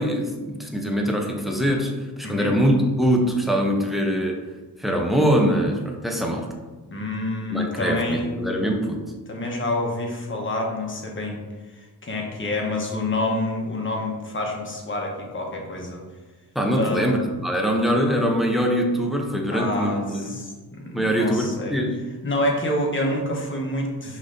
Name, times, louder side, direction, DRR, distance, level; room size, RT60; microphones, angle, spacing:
voice 1, 0.0-4.4 4.8-6.5 7.5-9.0 16.5-20.4 20.9-22.0, equal, ahead, 1 dB, 0.7 m, -23 dB
voice 2, 2.2-2.6 6.9-8.3 9.3-11.4 11.7-16.0 16.7-17.1 19.5-21.7 22.2-24.2, left 1 dB, 30° left, 0 dB, 1.0 m, -27 dB
5.4 x 3.1 x 2.6 m, 1.3 s
cardioid pair, 75°, 40 cm